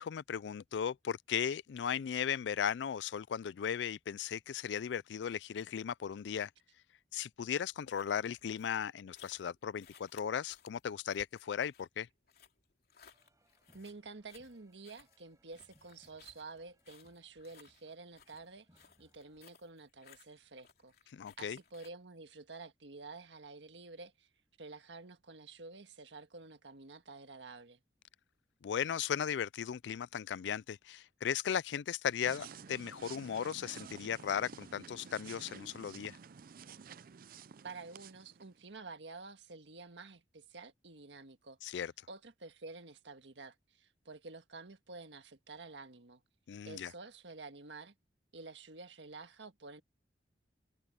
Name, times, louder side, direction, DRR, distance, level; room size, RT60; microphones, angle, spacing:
voice 1, 0.0-6.5 7.1-12.1 21.1-21.6 28.6-36.2 41.6-41.9 46.5-46.9, left 8 dB, 75° left, 0.4 m, -36 dB
sound 1, 7.5-21.9, left 7 dB, 60° left, 2.9 m, -63 dB
sound 2, 13.1-19.5, right 1 dB, 20° right, 6.3 m, -71 dB
voice 2, 13.7-20.9 21.4-24.3 24.6-27.8 37.6-41.6 42.1-46.2 46.6-47.9 48.3-49.8, right 3 dB, 85° right, 1.6 m, -50 dB
sound 3, 32.2-38.7, right 6 dB, 55° right, 0.5 m, -52 dB
head